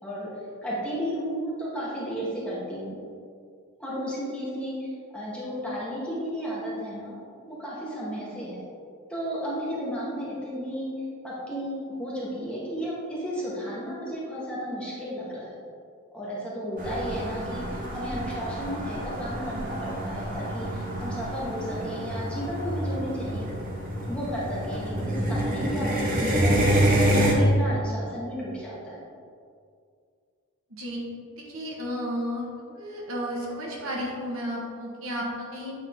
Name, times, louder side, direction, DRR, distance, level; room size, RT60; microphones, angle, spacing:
voice 1, 0.6-3.0 3.8-7.2 7.5-8.6 9.1-10.9 11.2-15.6 16.1-23.5 24.1-26.7 27.0-29.0, equal, 5° left, -8 dB, 1.4 m, -33 dB
sound 1, 16.8-27.3, right 1 dB, 40° right, 0.9 m, -27 dB
voice 2, 30.7-31.0 31.3-32.5 32.7-35.7, equal, 65° right, -3 dB, 1.3 m, -33 dB
8.1 x 3.8 x 3.6 m, 2.3 s
head